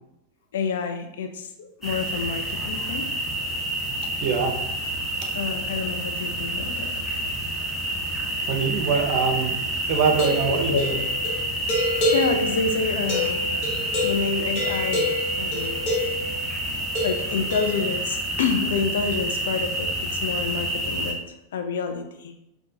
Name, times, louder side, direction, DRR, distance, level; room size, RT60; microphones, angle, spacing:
voice 1, 0.5-3.1 5.3-7.1 10.4-11.0 11.7-11.8 12.1-13.6 14.0-15.8 17.0-22.3, left 5 dB, 60° left, 6 dB, 0.4 m, -28 dB
sound 1, 1.8-21.1, right 1 dB, 5° right, 0.8 m, -28 dB
voice 2, 4.2-4.6 5.2-5.3 8.4-9.6 9.9-11.0, right 5 dB, 45° right, 3 dB, 0.6 m, -23 dB
sound 2, 10.1-16.4 16.9-17.8, left 2 dB, 45° left, 1.1 m, -28 dB
5.0 x 2.2 x 2.7 m, 0.84 s
figure-of-eight pair, 90°, 0 cm